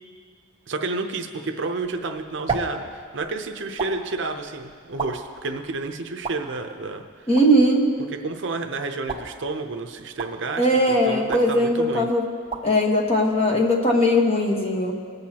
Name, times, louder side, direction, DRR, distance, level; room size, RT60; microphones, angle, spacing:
voice 1, 0.7-7.3 8.1-12.1, right 3 dB, 60° right, 5 dB, 0.7 m, -30 dB
sound 1, 1.8-14.0, right 4 dB, 25° right, 1.1 m, -37 dB
voice 2, 7.3-7.9 10.6-12.3 12.6-14.9, equal, 30° left, 0 dB, 1.2 m, -19 dB
20.5 x 8.0 x 2.9 m, 2.1 s
head